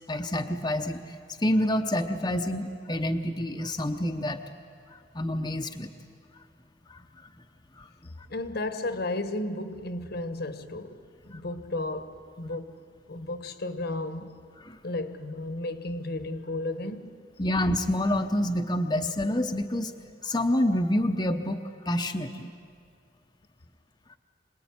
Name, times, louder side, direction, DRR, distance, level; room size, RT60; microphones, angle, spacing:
voice 1, 0.1-4.4 5.1-5.9 6.9-7.0 7.8-7.9 14.6-14.8 17.4-19.9 20.2-22.5, left 1 dB, 20° left, 0.9 m, -27 dB
voice 2, 8.3-12.8 13.1-14.3 14.8-17.1, left 2 dB, 60° left, 1.2 m, -33 dB
26.5 x 20.0 x 9.6 m
head